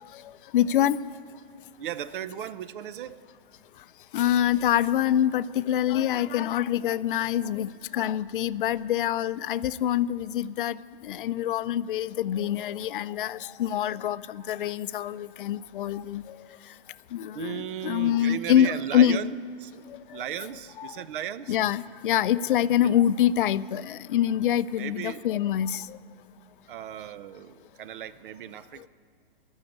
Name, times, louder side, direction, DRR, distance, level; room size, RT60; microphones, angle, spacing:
voice 1, 0.2-1.0 4.1-16.5 17.1-19.2 19.9-20.2 20.8-21.0 21.5-26.0, left 11 dB, 60° left, 16 dB, 0.4 m, -25 dB
voice 2, 1.8-3.2 17.3-19.8 20.1-21.6 22.8-22.9 24.8-25.3 26.7-28.9, right 10 dB, 60° right, 16 dB, 0.6 m, -36 dB
15.5 x 6.4 x 9.9 m, 2.5 s
hypercardioid pair, 145°, 31 cm